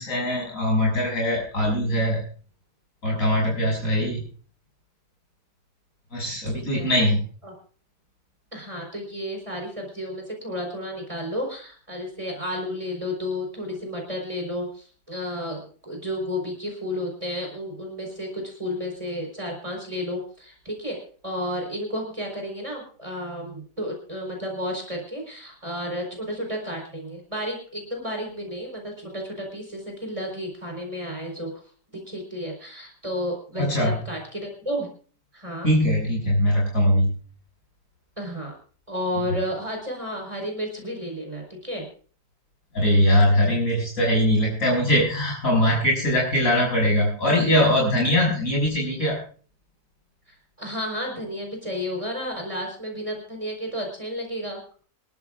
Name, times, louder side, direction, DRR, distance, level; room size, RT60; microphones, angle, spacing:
voice 1, 0.0-2.2 3.0-4.2 6.1-7.2 33.6-33.9 35.6-37.1 42.7-49.2, equal, 50° left, -2 dB, 6.8 m, -21 dB
voice 2, 6.5-6.9 7.4-7.5 8.5-31.5 31.9-34.9 35.3-35.7 38.2-38.5 38.9-41.9 50.3-54.6, equal, 20° right, 1 dB, 4.4 m, -32 dB
26.5 x 12.0 x 2.5 m, 0.43 s
omnidirectional pair, 1.8 m